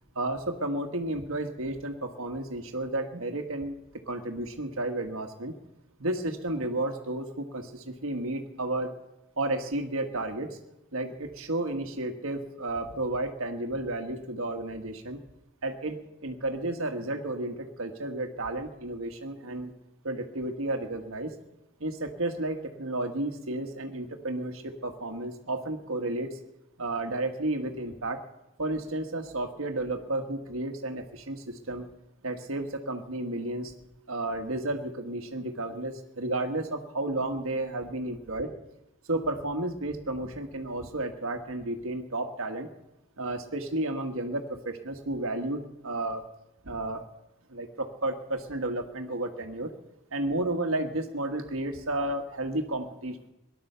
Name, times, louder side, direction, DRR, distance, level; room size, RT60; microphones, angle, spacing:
voice 1, 0.1-3.7 4.1-5.5 6.0-8.9 9.4-10.6 10.9-15.2 15.6-16.0 16.2-19.7 20.0-21.3 21.8-26.4 26.8-28.2 28.6-31.9 32.2-33.7 34.1-38.5 39.1-42.7 43.2-46.2 46.6-47.0 47.5-49.7 50.1-53.3, right 2 dB, 75° right, 5 dB, 1.5 m, -32 dB
18.5 x 11.5 x 6.8 m, 0.90 s
head